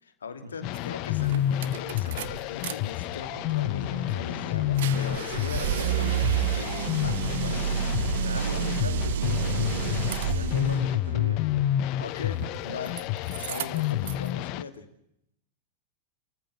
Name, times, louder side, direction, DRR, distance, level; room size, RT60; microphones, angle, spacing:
voice 1, 0.0-7.8 12.0-14.9, left 6 dB, 70° left, 8 dB, 2.8 m, -40 dB
sound 1, 0.6-14.6, left 12 dB, 40° left, 1.0 m, -29 dB
sound 2, 0.8-0.9 1.2-2.7 3.1-10.8 12.3-13.0 13.3-14.3, right 11 dB, 55° right, 1.0 m, -30 dB
voice 2, 8.2-11.4, right 3 dB, 75° right, 10 dB, 2.2 m, -38 dB
29.5 x 14.5 x 8.6 m, 0.77 s
figure-of-eight pair, 90°, 0 cm